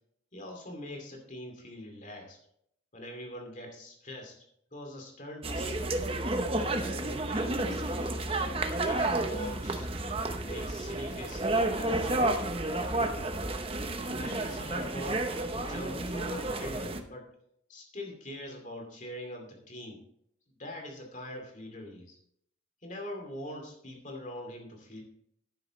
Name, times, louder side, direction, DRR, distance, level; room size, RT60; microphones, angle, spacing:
voice 1, 0.3-2.4 2.9-4.4 4.7-5.8 6.5-8.2 8.7-9.9 10.4-12.3 12.7-13.3 14.0-15.2 15.5-17.3 17.7-20.0 20.6-22.2 22.8-25.0, left 1 dB, 40° left, 2 dB, 2.5 m, -43 dB
sound 1, 5.4-17.0, right 2 dB, 30° right, 0.8 m, -31 dB
11.5 x 9.9 x 3.2 m, 0.71 s
head